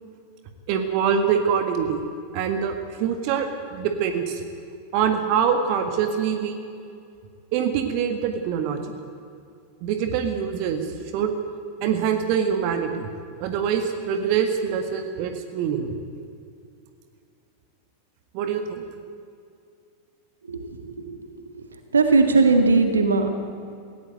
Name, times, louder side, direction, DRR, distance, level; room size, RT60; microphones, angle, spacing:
voice 1, 0.7-2.1 2.3-2.7 3.0-4.4 4.9-6.6 7.5-9.0 9.8-10.8 11.1-11.3 11.8-13.1 13.4-16.0 18.3-18.9, right 7 dB, 45° right, 7 dB, 1.7 m, -24 dB
voice 2, 20.5-21.4 21.9-23.3, right 3 dB, 75° right, 6 dB, 1.9 m, -19 dB
18.5 x 16.5 x 9.1 m, 2.4 s
figure-of-eight pair, 90°, 0 cm